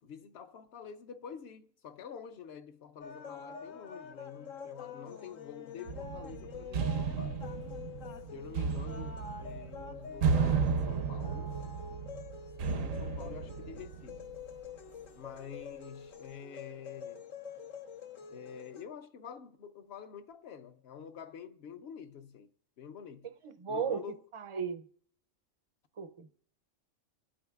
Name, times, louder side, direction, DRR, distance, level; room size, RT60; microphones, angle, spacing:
voice 1, 0.0-7.4 8.3-11.5 12.6-14.2 15.2-17.3 18.3-22.5 22.8-23.3 23.7-24.2, left 7 dB, 60° left, 0.8 m, -48 dB
sound 1, 3.0-18.8, left 6 dB, 85° left, 1.3 m, -46 dB
sound 2, 5.9-14.5, right 5 dB, 90° right, 1.1 m, -34 dB
voice 2, 23.4-24.0 24.3-24.9 26.0-26.3, right 6 dB, 55° right, 0.3 m, -35 dB
26.0 x 8.7 x 2.3 m
omnidirectional pair, 1.3 m